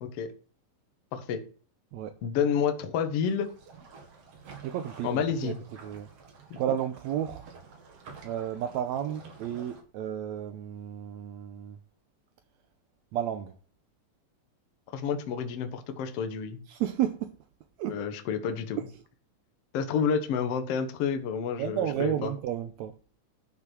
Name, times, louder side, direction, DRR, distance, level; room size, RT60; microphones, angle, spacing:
voice 1, 0.0-0.3 1.1-1.4 2.2-3.5 5.0-5.6 14.9-16.6 17.9-18.8 19.7-22.3, left 7 dB, 60° left, 1.8 m, -29 dB
sound 1, 3.2-9.8, right 4 dB, 50° right, 2.5 m, -50 dB
voice 2, 4.6-5.5 5.8-6.1 6.6-7.5 8.2-11.8 13.1-13.6 16.7-17.4 17.8-18.0 18.8-18.9 21.6-23.0, right 10 dB, 80° right, 1.6 m, -32 dB
12.0 x 6.0 x 6.1 m
omnidirectional pair, 4.0 m